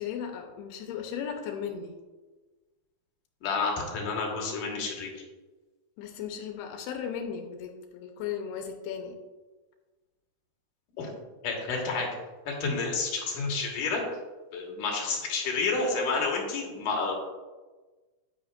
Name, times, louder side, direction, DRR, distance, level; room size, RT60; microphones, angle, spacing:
voice 1, 0.0-2.0 6.0-9.1, left 8 dB, 90° left, 3 dB, 2.8 m, -36 dB
voice 2, 3.4-5.1 11.0-11.1 11.4-12.1 12.5-14.0 14.5-17.1, left 4 dB, 65° left, -1 dB, 2.8 m, -30 dB
9.5 x 9.3 x 2.5 m, 1.2 s
omnidirectional pair, 4.5 m